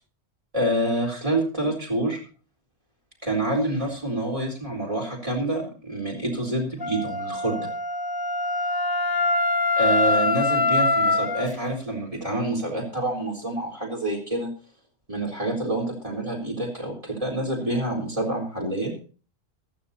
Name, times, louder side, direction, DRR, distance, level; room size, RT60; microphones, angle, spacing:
voice 1, 0.5-2.2 3.2-7.7 9.8-14.5 15.1-18.9, right 1 dB, 30° right, 0 dB, 4.1 m, -27 dB
Wind instrument woodwind instrument, 6.8-11.5, left 3 dB, 30° left, 0.5 m, -24 dB
15.5 x 13.5 x 2.8 m, 0.36 s
omnidirectional pair, 1.1 m